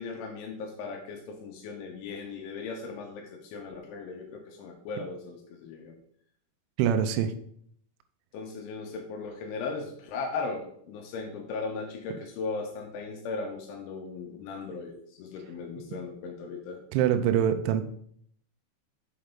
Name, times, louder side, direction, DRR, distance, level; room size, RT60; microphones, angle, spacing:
voice 1, 0.0-6.0 8.3-16.8, left 4 dB, 75° left, 3 dB, 3.0 m, -37 dB
voice 2, 6.8-7.3 16.9-17.8, right 9 dB, 85° right, 8 dB, 2.7 m, -24 dB
6.8 x 5.9 x 5.1 m, 0.65 s
omnidirectional pair, 6.0 m